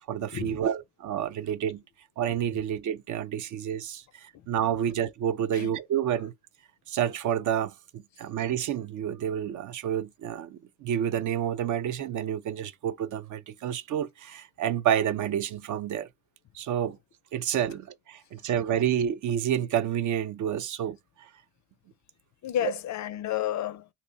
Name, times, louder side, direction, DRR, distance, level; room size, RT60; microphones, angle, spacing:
voice 1, 0.1-1.8 2.2-6.3 6.9-16.1 16.5-17.0 17.3-21.3, right 10 dB, 45° right, 0.5 m, -29 dB
voice 2, 22.4-23.9, left 11 dB, 40° left, 0.4 m, -31 dB
2.8 x 2.0 x 3.7 m
hypercardioid pair, 70°, 46 cm